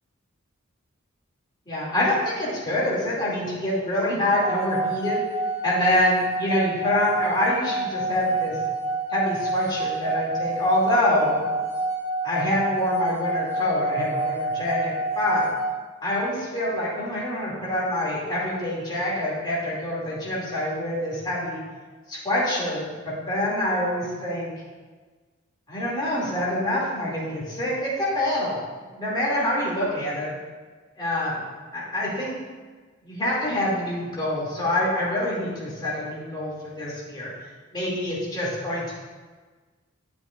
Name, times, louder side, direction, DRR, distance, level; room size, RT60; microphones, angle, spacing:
voice 1, 1.7-5.2 5.6-8.6 9.1-11.4 12.2-15.4 16.0-21.6 22.1-24.5 25.7-28.6 28.9-30.3 31.0-31.4 31.7-32.3 33.0-37.3 37.7-38.9, left 1 dB, 20° left, -7 dB, 2.3 m, -26 dB
sound 1, 4.4-15.7, right 2 dB, 65° right, 1.7 m, -28 dB
9.0 x 7.5 x 2.4 m, 1.4 s
head